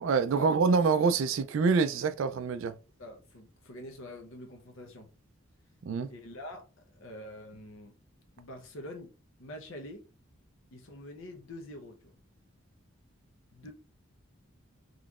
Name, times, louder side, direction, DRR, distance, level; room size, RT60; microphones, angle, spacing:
voice 1, 0.0-2.7 5.8-6.1, right 5 dB, 70° right, 0.3 m, -26 dB
voice 2, 3.0-5.1 6.1-7.9 8.4-9.1 9.4-10.1 10.7-12.1 13.5-13.7, left 1 dB, 70° left, 0.8 m, -45 dB
4.0 x 3.1 x 2.3 m
head